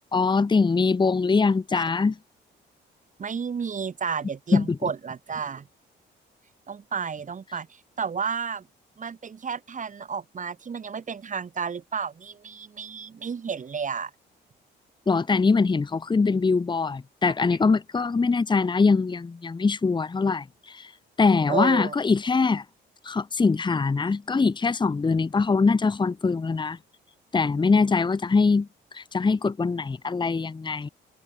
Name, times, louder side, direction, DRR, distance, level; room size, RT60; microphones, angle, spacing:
voice 1, 0.1-2.1 4.5-4.9 15.1-20.9 21.2-22.6 23.0-26.8 27.3-28.7 28.9-30.9, left 4 dB, 25° left, 1.1 m, -23 dB
voice 2, 3.2-5.7 6.7-8.7 9.0-14.1 17.3-17.4 21.5-21.9, right 6 dB, 40° right, 2.0 m, -32 dB
cardioid pair, 90°, 20 cm